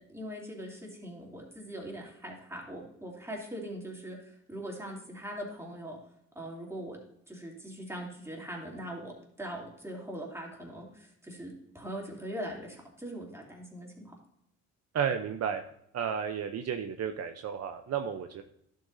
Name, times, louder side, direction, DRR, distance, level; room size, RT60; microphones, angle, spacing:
voice 1, 0.0-6.0 6.3-7.0 7.3-14.2, right 1 dB, 10° right, -1 dB, 2.9 m, -41 dB
voice 2, 14.9-15.6 15.9-18.4, right 7 dB, 55° right, 6 dB, 0.7 m, -32 dB
11.0 x 7.7 x 2.7 m, 0.76 s
cardioid pair, 90°, 30 cm